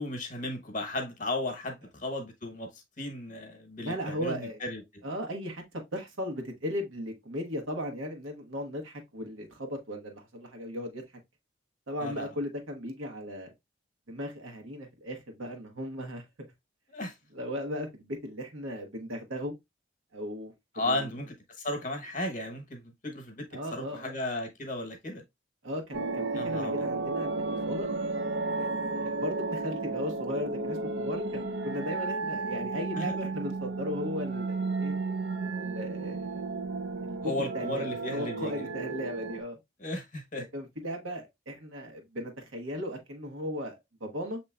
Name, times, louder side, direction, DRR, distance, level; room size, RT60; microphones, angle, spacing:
voice 1, 0.0-4.8 12.0-12.3 16.9-17.1 20.7-25.2 26.4-26.9 32.9-33.3 37.2-38.7 39.8-40.4, left 1 dB, 40° left, 0.9 m, -35 dB
voice 2, 3.8-4.6 5.0-5.6 5.9-11.0 11.9-13.5 14.1-16.2 17.3-19.5 20.1-20.5 20.8-21.1 23.5-24.1 25.6-27.9 28.6-34.9 35.4-36.4 37.0-39.6 40.5-44.4, equal, 85° right, 1.2 m, -37 dB
sound 1, 25.9-39.4, right 3 dB, 65° right, 0.5 m, -33 dB
6.6 x 2.9 x 2.3 m
head